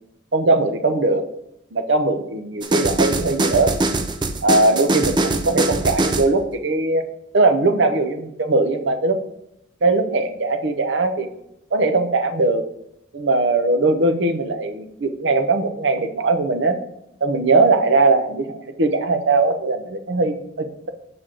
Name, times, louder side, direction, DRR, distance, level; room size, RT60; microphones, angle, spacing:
voice 1, 0.3-1.2 1.7-3.7 4.4-7.0 7.3-9.2 9.8-11.3 11.7-12.6 13.1-16.8 17.2-20.9, right 3 dB, 65° right, 7 dB, 0.7 m, -20 dB
sound 1, 2.6-6.3, right 2 dB, 25° right, 0.4 m, -22 dB
6.4 x 6.0 x 3.8 m, 0.81 s
head